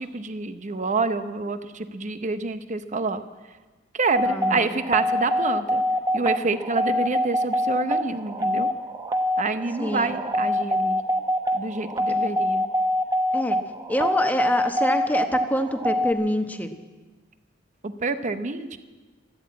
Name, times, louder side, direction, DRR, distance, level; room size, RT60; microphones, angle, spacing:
voice 1, 0.0-3.2 3.9-5.8 6.1-8.7 9.4-11.0 11.5-12.7 17.8-18.8, right 3 dB, 40° right, 10 dB, 0.8 m, -27 dB
sound 1, 4.1-16.1, equal, 20° right, 1.1 m, -24 dB
voice 2, 4.2-4.7 9.8-10.1 13.3-13.6 13.9-16.7, equal, 10° left, 6 dB, 1.0 m, -26 dB
13.0 x 12.5 x 8.5 m, 1.3 s
head